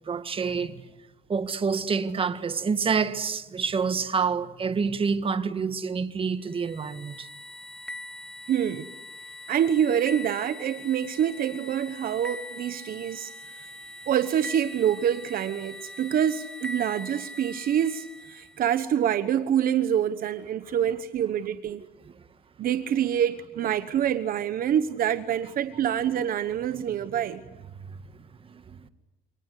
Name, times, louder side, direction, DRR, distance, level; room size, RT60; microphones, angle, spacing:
voice 1, 0.1-0.8 1.3-7.3 22.1-22.2 28.5-28.9, right 5 dB, 30° right, 1.7 m, -27 dB
sound 1, 6.5-18.6, left 1 dB, 5° left, 2.1 m, -42 dB
voice 2, 8.5-8.9 9.5-13.3 13.6-13.7 14.1-21.8 22.6-27.4, right 9 dB, 60° right, 1.1 m, -26 dB
28.5 x 25.0 x 8.3 m
cardioid pair, 110°, 17 cm